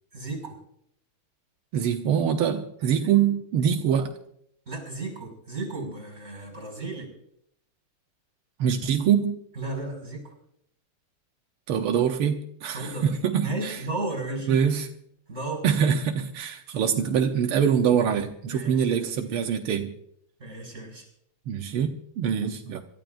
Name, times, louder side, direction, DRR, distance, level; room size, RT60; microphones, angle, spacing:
voice 1, 0.1-0.6 2.8-3.1 4.7-7.1 9.6-10.3 12.7-13.1 13.4-14.5 15.3-15.7 18.4-19.1 20.4-21.1, right 2 dB, 30° right, 2 dB, 6.0 m, -34 dB
voice 2, 1.7-4.1 8.6-9.4 11.7-13.8 14.5-14.9 15.6-19.9 21.5-22.8, right 8 dB, 90° right, 4 dB, 1.9 m, -24 dB
27.0 x 14.0 x 2.6 m, 0.70 s
omnidirectional pair, 2.3 m